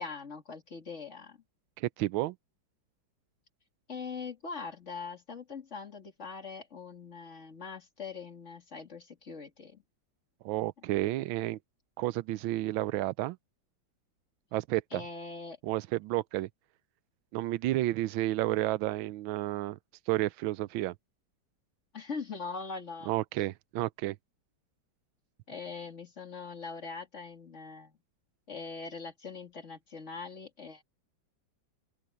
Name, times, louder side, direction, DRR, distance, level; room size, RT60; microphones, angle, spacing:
voice 1, 0.0-1.4 3.9-9.8 14.9-15.6 21.9-23.1 25.5-28.0 28.5-30.8, left 4 dB, 35° left, 2.6 m, -42 dB
voice 2, 1.8-2.4 10.4-11.6 12.0-13.4 14.5-15.0 15.6-16.5 17.3-19.8 20.1-20.9 23.1-24.2, right 16 dB, 90° right, 1.4 m, -31 dB
open air
omnidirectional pair, 2.1 m